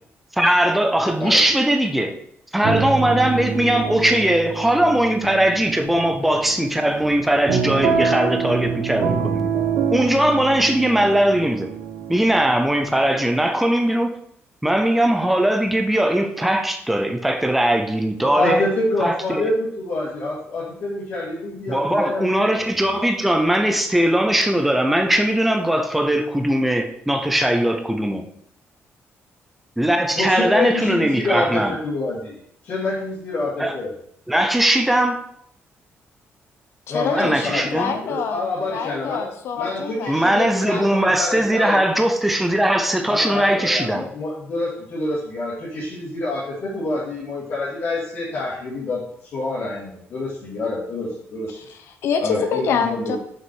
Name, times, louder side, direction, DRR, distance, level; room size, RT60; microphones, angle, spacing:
voice 1, 0.3-2.2 2.5-9.5 9.9-11.7 12.1-14.2 14.6-18.7 19.0-19.5 21.7-28.3 29.8-31.8 33.6-33.7 34.3-35.2 37.2-37.9 40.1-44.1, right 1 dB, 5° right, 0.5 m, -20 dB
sound 1, 2.6-13.2, right 6 dB, 90° right, 1.1 m, -26 dB
voice 2, 18.2-22.6 30.2-32.4 32.6-33.9 36.9-39.2 39.6-41.8 43.1-51.6 52.2-53.2, left 2 dB, 50° left, 2.4 m, -27 dB
voice 3, 36.9-40.6 51.5-53.2, left 6 dB, 65° left, 1.0 m, -26 dB
6.0 x 5.9 x 4.6 m
cardioid pair, 180°, 5 cm